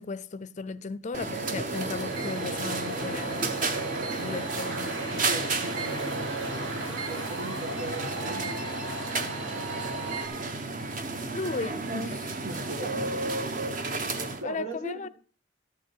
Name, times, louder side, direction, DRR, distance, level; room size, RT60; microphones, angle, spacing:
voice 1, 0.0-3.5 4.2-5.3 11.3-12.3 14.4-15.1, left 4 dB, 35° left, 0.4 m, -36 dB
sound 1, 1.1-14.4, right 3 dB, 40° right, 0.9 m, -32 dB
sound 2, 1.7-10.3, right 1 dB, 65° right, 1.8 m, -37 dB
voice 2, 5.2-8.8 12.4-13.4 14.0-15.1, right 2 dB, 80° right, 2.0 m, -40 dB
13.0 x 8.3 x 4.6 m
head